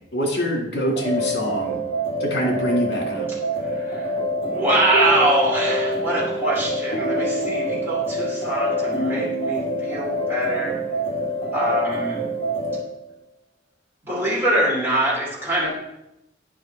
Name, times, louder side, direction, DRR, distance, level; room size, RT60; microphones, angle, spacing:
voice 1, 0.1-1.8 2.2-3.3, equal, 65° left, 1 dB, 2.2 m, -24 dB
sound 1, 1.0-12.8, equal, 30° left, 2.1 m, -26 dB
voice 2, 3.6-10.8 11.5-12.2 14.0-15.8, right 1 dB, 10° right, -7 dB, 2.9 m, -24 dB
9.3 x 5.2 x 4.4 m, 0.87 s
head